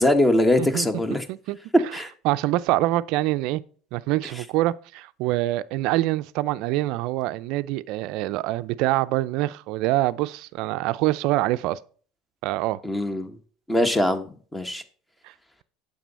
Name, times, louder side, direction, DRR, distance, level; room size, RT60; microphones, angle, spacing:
voice 1, 0.0-1.2 1.9-2.1 12.8-13.4 13.7-14.8, left 1 dB, 10° left, 1.4 m, -22 dB
voice 2, 2.2-3.6 3.9-11.8 12.4-12.8, right 17 dB, 65° right, 0.5 m, -25 dB
9.1 x 7.3 x 4.2 m
hypercardioid pair, 80°, 0 cm